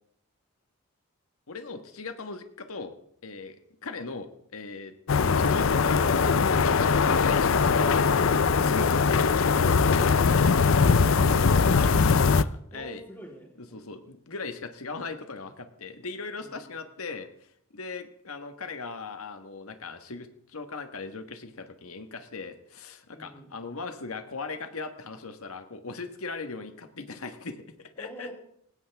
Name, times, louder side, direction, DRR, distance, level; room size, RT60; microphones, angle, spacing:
voice 1, 1.5-2.9 3.2-3.6 3.8-4.9 5.3-8.1 8.6-10.0 11.0-13.0 13.7-17.3 17.7-28.3, left 4 dB, 85° left, 8 dB, 1.4 m, -39 dB
sound 1, 5.1-12.4, left 5 dB, 70° left, 0.6 m, -21 dB
voice 2, 8.0-8.9 9.5-10.8 12.7-13.9 16.4-16.7 23.1-23.5 28.0-28.3, equal, 10° left, 0 dB, 3.4 m, -45 dB
19.0 x 17.0 x 3.5 m, 0.70 s
head